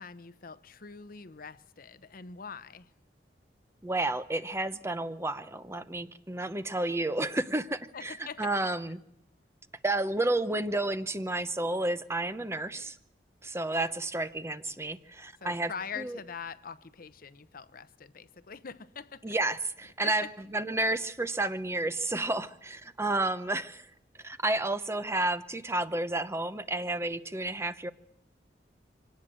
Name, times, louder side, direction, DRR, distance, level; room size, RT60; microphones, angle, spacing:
voice 1, 0.0-2.9 7.9-8.5 15.4-19.3 20.0-20.3, left 6 dB, 55° left, 0.8 m, -43 dB
voice 2, 3.8-9.0 9.8-13.0 13.4-15.7 16.0-16.2 19.2-23.9 24.2-27.9, right 2 dB, 15° right, 0.8 m, -31 dB
25.0 x 18.0 x 7.6 m
head